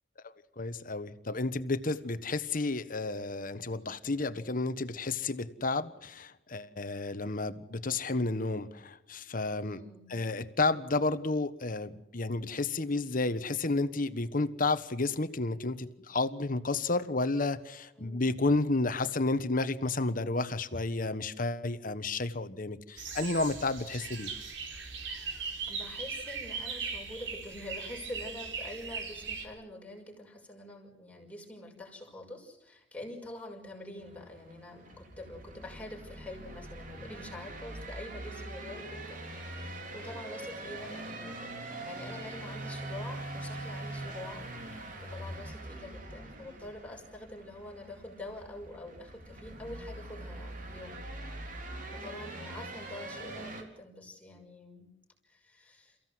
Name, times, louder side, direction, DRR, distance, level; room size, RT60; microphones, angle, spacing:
voice 1, 0.2-9.8 10.1-24.3, left 3 dB, 50° left, 12 dB, 1.3 m, -31 dB
voice 2, 9.6-10.1 18.0-18.4 25.7-39.2 39.5-51.0 51.9-54.9 55.2-56.0, left 1 dB, 10° left, -2 dB, 5.7 m, -46 dB
sound 1, 23.0-29.5, right 5 dB, 90° right, 4.4 m, -39 dB
sound 2, 34.0-53.6, right 2 dB, 50° right, 4.0 m, -43 dB
29.5 x 16.0 x 7.9 m, 0.90 s
head